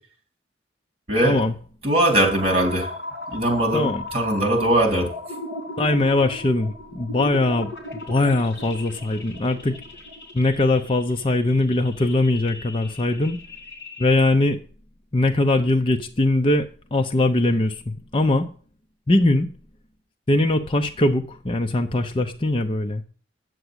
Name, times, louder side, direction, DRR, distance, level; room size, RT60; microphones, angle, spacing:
voice 1, 1.1-1.4 1.8-2.9 3.3-5.1, right 1 dB, 35° right, 2 dB, 3.8 m, -20 dB
sound 1, 2.2-14.1, left 2 dB, 65° left, 3.3 m, -37 dB
voice 2, 5.8-7.7 8.1-9.8 10.3-13.4 14.0-14.6 15.1-18.5 19.1-19.5 20.3-23.0, left 2 dB, 30° left, 5 dB, 0.7 m, -21 dB
9.2 x 7.1 x 8.0 m, 0.43 s
head